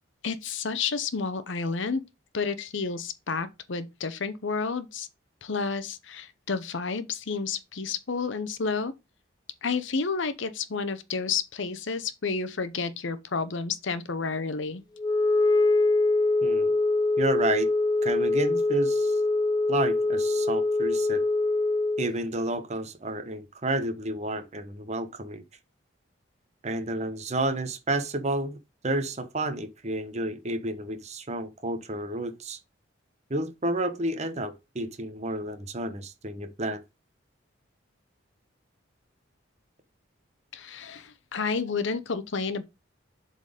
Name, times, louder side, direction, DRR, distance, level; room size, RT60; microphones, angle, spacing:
voice 1, 0.2-2.0 2.3-5.1 5.4-8.9 9.6-14.8 40.5-42.6, left 4 dB, 70° left, 0.8 m, -30 dB
Wind instrument woodwind instrument, 15.0-22.1, left 2 dB, 20° left, 0.4 m, -24 dB
voice 2, 16.4-16.8 17.2-17.7 18.0-19.2 19.7-21.2 22.0-25.4 26.6-28.6 28.8-32.6 33.3-36.8, right 1 dB, 35° right, 0.9 m, -31 dB
7.4 x 4.1 x 5.0 m
head